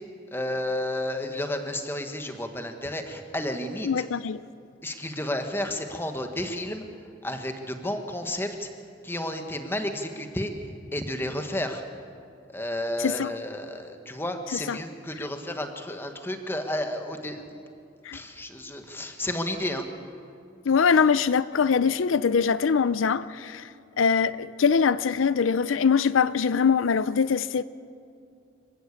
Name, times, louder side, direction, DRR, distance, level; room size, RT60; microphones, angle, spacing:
voice 1, 0.3-4.0 4.8-6.8 7.2-8.7 9.0-11.8 12.5-17.6 18.1-19.9, left 1 dB, 10° left, 1.5 m, -32 dB
voice 2, 3.8-4.4 13.0-13.3 14.7-14.8 18.0-18.2 20.6-23.7 24.0-27.6, left 6 dB, 90° left, 0.5 m, -23 dB
26.5 x 15.5 x 8.4 m
head